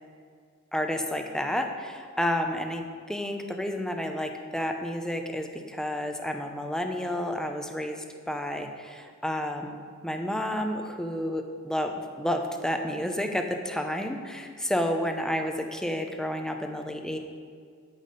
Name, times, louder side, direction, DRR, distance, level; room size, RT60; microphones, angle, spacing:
voice 1, 0.7-11.9 12.2-17.2, equal, 5° left, 4 dB, 0.7 m, -30 dB
13.5 x 6.1 x 5.2 m, 2.1 s
head